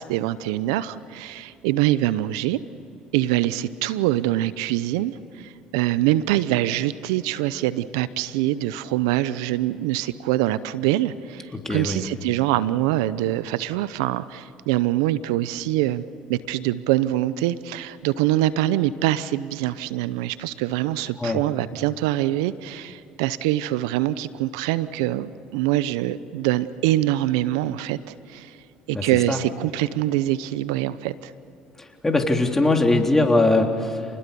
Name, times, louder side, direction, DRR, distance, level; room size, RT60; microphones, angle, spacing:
voice 1, 0.0-2.6 3.1-16.0 16.3-28.6 28.9-31.3, right 14 dB, 85° right, 16 dB, 0.7 m, -24 dB
voice 2, 11.5-12.0 21.2-21.4 28.9-29.4 31.8-34.1, left 2 dB, 15° left, 3 dB, 3.6 m, -21 dB
29.5 x 20.5 x 7.0 m, 2.8 s
supercardioid pair, 75°, 3 cm